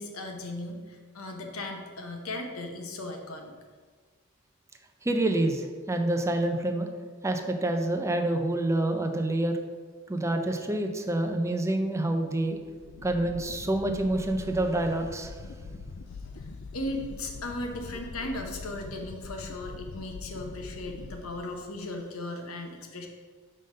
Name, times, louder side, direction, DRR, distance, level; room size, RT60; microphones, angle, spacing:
voice 1, 0.0-3.5 16.2-23.1, left 1 dB, 75° left, 3 dB, 0.9 m, -37 dB
voice 2, 5.0-6.9 7.2-9.6 10.1-12.6 13.0-15.7, right 1 dB, 15° right, 5 dB, 0.5 m, -27 dB
sound 1, 12.6-21.9, left 3 dB, 55° left, 0.3 m, -43 dB
5.2 x 3.8 x 5.3 m, 1.5 s
head